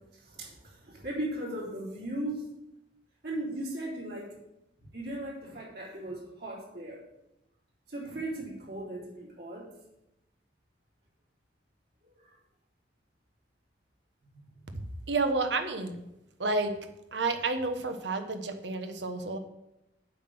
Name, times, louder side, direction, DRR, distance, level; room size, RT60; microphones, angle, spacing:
voice 1, 0.2-2.5 3.2-4.3 4.9-7.0 7.9-9.7 12.1-12.2, right 1 dB, 60° right, -5 dB, 3.8 m, -37 dB
voice 2, 15.1-16.0 16.4-16.7 17.1-19.4, right 3 dB, 75° right, 8 dB, 1.2 m, -30 dB
8.3 x 5.8 x 7.8 m, 0.88 s
head